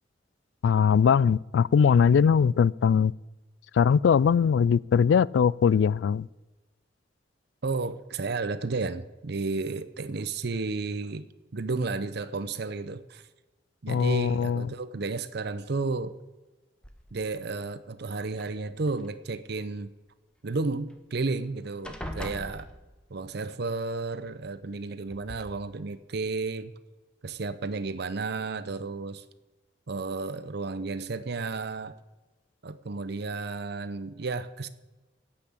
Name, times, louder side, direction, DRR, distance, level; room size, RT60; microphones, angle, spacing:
voice 1, 0.6-3.1 3.7-6.3 13.9-14.7, left 6 dB, 75° left, 0.3 m, -21 dB
voice 2, 7.6-11.3 11.5-13.2 13.8-16.1 17.1-19.9 20.4-22.7 23.1-26.7 27.2-29.2 29.9-32.0 32.6-34.7, right 3 dB, 65° right, 0.7 m, -32 dB
sound 1, 16.8-17.4 18.3-19.1 20.9-21.0 21.3-21.5 21.8-23.3 24.4-24.5 25.1-25.4, equal, 5° left, 1.2 m, -41 dB
15.5 x 5.9 x 8.5 m
head